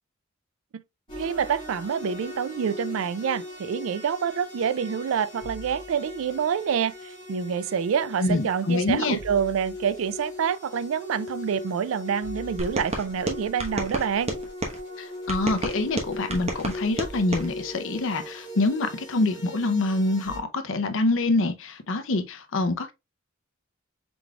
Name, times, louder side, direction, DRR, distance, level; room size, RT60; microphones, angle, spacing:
sound 1, 1.1-20.4, left 2 dB, 25° left, 2.2 m, -40 dB
voice 1, 1.2-14.4, right 7 dB, 75° right, 0.4 m, -27 dB
voice 2, 8.2-9.2 15.0-22.9, left 2 dB, 65° left, 0.6 m, -26 dB
sound 2, 12.6-14.8 15.3-17.5, right 1 dB, 30° right, 1.0 m, -31 dB
4.7 x 3.8 x 2.3 m
head